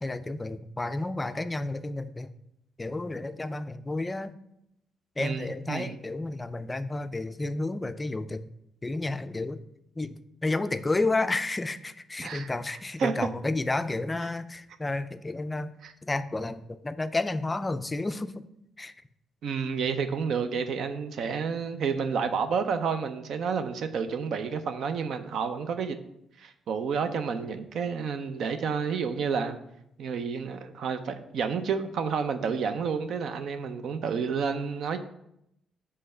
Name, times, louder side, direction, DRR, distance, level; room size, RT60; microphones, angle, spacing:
voice 1, 0.0-2.3 2.8-4.4 5.2-8.4 8.8-9.6 10.0-10.1 10.4-15.7 16.0-18.5 18.8-18.9, left 2 dB, 20° left, 12 dB, 0.3 m, -31 dB
voice 2, 5.2-6.0 12.2-12.5 13.0-13.1 15.8-15.9 19.4-26.0 26.4-29.6 30.0-35.0, right 6 dB, 70° right, 9 dB, 0.5 m, -30 dB
5.4 x 3.3 x 5.5 m, 0.79 s
cardioid pair, 90°, 0 cm